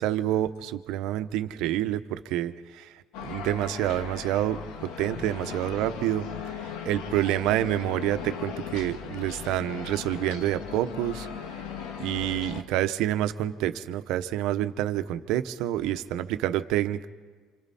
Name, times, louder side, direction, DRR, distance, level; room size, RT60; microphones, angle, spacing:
voice 1, 0.0-6.3 6.6-11.3 12.0-17.1, right 12 dB, 75° right, 10 dB, 1.0 m, -28 dB
sound 1, 3.1-12.6, left 7 dB, 85° left, 1.7 m, -38 dB
27.0 x 26.0 x 4.2 m, 1.5 s
cardioid pair, 105°, 0 cm